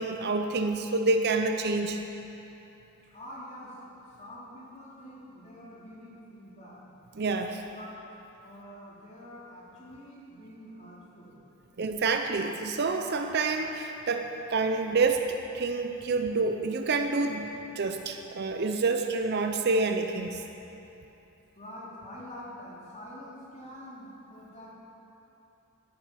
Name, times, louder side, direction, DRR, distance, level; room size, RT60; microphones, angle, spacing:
voice 1, 0.0-2.0 7.2-7.6 11.8-20.4, right 3 dB, 45° right, 6 dB, 0.6 m, -28 dB
voice 2, 3.1-6.8 7.7-8.0 8.4-11.3 21.5-24.7, equal, 30° left, -6 dB, 2.6 m, -46 dB
12.0 x 9.7 x 5.8 m, 3.0 s
head